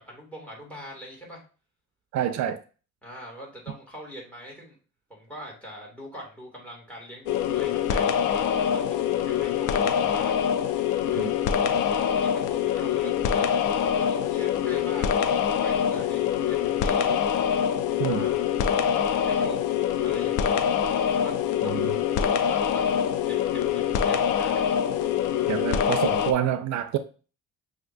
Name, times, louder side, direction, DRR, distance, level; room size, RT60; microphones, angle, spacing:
voice 1, 0.0-1.4 3.0-4.8 5.1-10.7 11.1-11.4 11.8-17.4 18.0-18.5 18.8-20.6 21.1-21.4 21.6-21.8 22.1-22.8 23.3-24.6, equal, 5° left, 2.2 m, -42 dB
voice 2, 2.1-2.6 11.2-11.3 18.0-18.3 21.6-21.9 25.5-27.0, right 10 dB, 70° right, 0.4 m, -27 dB
sound 1, 7.3-26.3, left 8 dB, 90° left, 0.5 m, -24 dB
6.2 x 2.7 x 2.5 m
cardioid pair, 90°, 30 cm